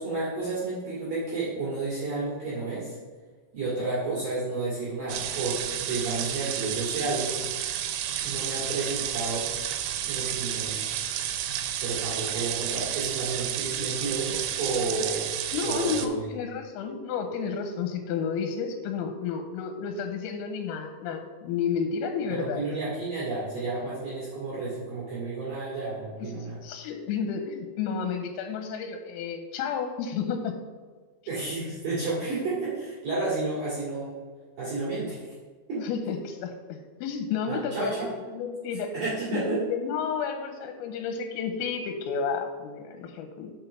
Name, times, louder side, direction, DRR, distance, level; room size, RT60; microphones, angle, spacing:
voice 1, 0.0-3.0 3.5-7.4 8.2-9.5 10.0-10.8 11.8-15.3 15.6-16.3 22.3-26.6 31.3-34.2 34.6-35.3 35.7-35.8 37.4-38.1 38.7-39.6, right 3 dB, 55° right, -8 dB, 3.0 m, -31 dB
sound 1, 5.1-16.1, right 10 dB, 85° right, 3.4 m, -31 dB
voice 2, 15.5-22.6 26.6-30.6 35.8-38.9 39.3-43.5, left 6 dB, 85° left, 6 dB, 3.3 m, -31 dB
7.3 x 5.9 x 5.5 m, 1.5 s
omnidirectional pair, 6.0 m